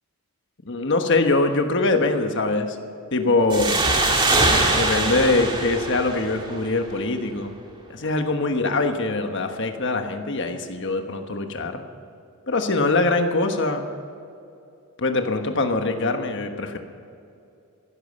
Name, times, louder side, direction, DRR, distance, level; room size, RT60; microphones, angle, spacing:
voice 1, 0.6-2.8 3.1-3.8 4.7-7.5 7.9-11.8 12.5-13.9 15.0-16.8, left 3 dB, 55° left, 6 dB, 1.2 m, -23 dB
sound 1, 3.5-6.9, right 2 dB, 20° right, 2.0 m, -22 dB
15.0 x 12.5 x 6.7 m, 2.5 s
head